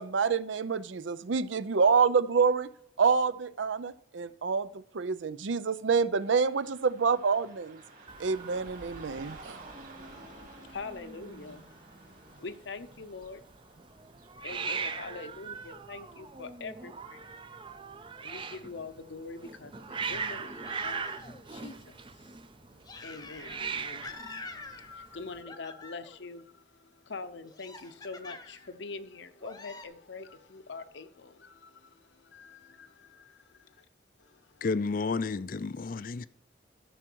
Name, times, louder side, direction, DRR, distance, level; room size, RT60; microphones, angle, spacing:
voice 1, 0.0-2.7 3.0-7.8 8.2-9.6, right 5 dB, 80° right, 0.5 m, -27 dB
Car passing by / Traffic noise roadway noise, 6.2-15.2, right 3 dB, 45° right, 2.6 m, -53 dB
Hiss, 8.1-25.4, right 5 dB, 25° right, 0.5 m, -41 dB
voice 2, 10.0-17.8 18.2-22.4 22.7-33.8 34.2-34.6, left 4 dB, 70° left, 0.8 m, -45 dB
sound 1, 20.6-21.6 22.9-23.7 24.0-25.2 25.5-26.3 27.5-28.7 29.4-29.9, left 3 dB, 20° left, 0.9 m, -47 dB
voice 3, 34.6-36.3, left 4 dB, 45° left, 0.4 m, -31 dB
13.5 x 6.2 x 4.6 m
head